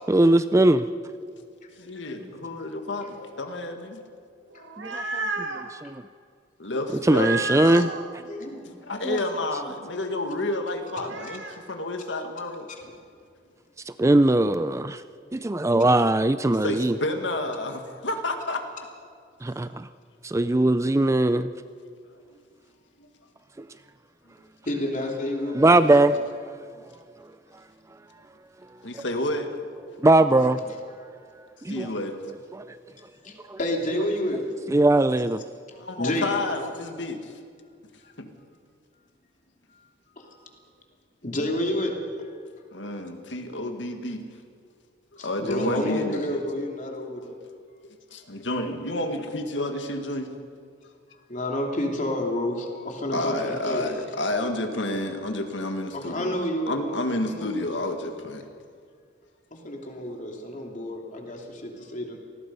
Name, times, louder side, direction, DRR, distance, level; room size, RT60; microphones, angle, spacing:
voice 1, 0.1-0.9 2.2-2.3 4.8-6.0 7.0-7.9 9.0-9.2 13.9-15.0 15.3-17.0 19.4-19.9 20.2-21.5 25.5-26.2 26.4-26.6 30.0-30.6 31.6-31.9 32.5-32.6 34.7-35.4, right 2 dB, 15° right, 12 dB, 0.4 m, -20 dB
voice 2, 1.8-3.0 3.4-4.0 6.6-7.5 8.8-11.4 11.7-12.7 15.8-15.9 16.5-18.6 28.8-29.5 31.7-32.2 35.8-37.2 38.2-38.3 42.7-44.2 45.2-46.4 48.1-50.3 53.1-56.4 56.7-58.4, left 1 dB, 70° left, 5 dB, 2.0 m, -30 dB
sound 1, 4.5-5.7 7.1-8.0 10.8-11.6, right 3 dB, 80° right, 2.0 m, -31 dB
voice 3, 8.3-9.0 12.7-12.9 24.6-26.2 30.4-30.6 31.0-31.1 33.2-33.3 33.6-34.4 35.7-36.3 40.1-40.4 41.2-42.3 45.2-47.4 51.3-54.0 55.9-57.7 59.5-62.2, left 1 dB, 40° left, 1 dB, 3.0 m, -30 dB
27.0 x 19.5 x 5.5 m, 2.2 s
head